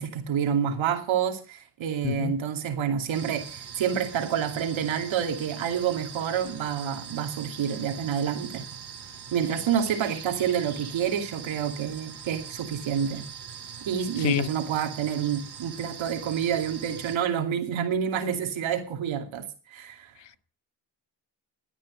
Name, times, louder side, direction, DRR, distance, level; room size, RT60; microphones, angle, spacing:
voice 1, 0.0-8.6 9.3-13.2 13.8-20.1, right 8 dB, 75° right, 2.6 m, -28 dB
sound 1, 3.1-17.2, right 7 dB, 55° right, 2.3 m, -42 dB
voice 2, 14.2-14.5 20.2-20.4, left 14 dB, 65° left, 0.7 m, -28 dB
13.5 x 9.4 x 6.3 m
cardioid pair, 65°, 46 cm